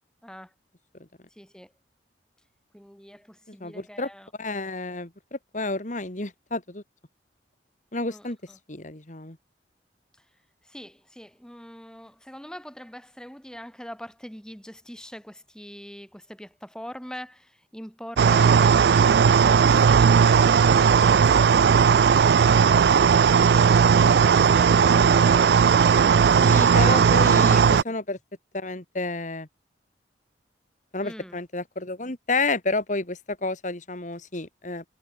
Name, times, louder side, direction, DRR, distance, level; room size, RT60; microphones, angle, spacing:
voice 1, 0.2-0.5 1.3-1.7 2.7-4.3 8.1-8.6 10.2-10.3 10.6-21.8 22.1-28.0 31.0-31.4, equal, 5° left, 2.2 m, -43 dB
voice 2, 3.6-4.1 4.4-6.8 7.9-8.4 8.7-9.4 26.4-28.2 28.5-29.5 30.9-34.8, left 3 dB, 45° left, 2.2 m, -30 dB
sound 1, 18.2-27.8, right 6 dB, 65° right, 0.3 m, -17 dB
head